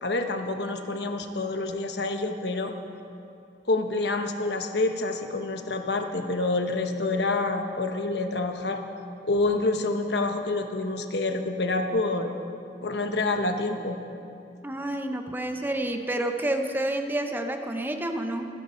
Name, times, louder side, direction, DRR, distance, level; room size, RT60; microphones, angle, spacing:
voice 1, 0.0-2.7 3.7-8.8 9.2-12.3 12.8-14.0, left 2 dB, 65° left, 6 dB, 1.1 m, -27 dB
voice 2, 14.6-18.5, right 1 dB, 10° right, 5 dB, 0.7 m, -29 dB
26.0 x 10.0 x 4.4 m, 2.6 s
head